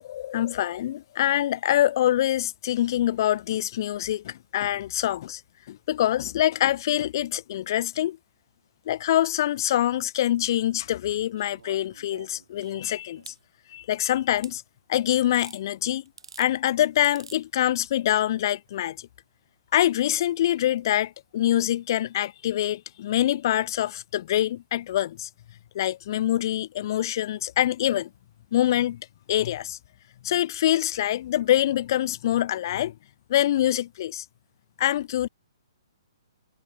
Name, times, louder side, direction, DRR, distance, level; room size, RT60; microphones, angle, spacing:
voice 1, 0.0-5.4 5.7-8.2 8.9-13.3 13.7-14.6 14.9-16.0 16.4-19.1 19.7-25.3 25.7-28.1 28.5-29.0 29.3-29.8 30.2-32.9 33.3-34.2 34.8-35.3, left 12 dB, 50° left, 0.7 m, -25 dB
sound 1, 11.4-13.4 14.4-14.6 15.3-15.6 16.1-16.5 17.0-17.4 18.7-18.8, right 6 dB, 75° right, 5.0 m, -47 dB
hypercardioid pair, 130°, 3 cm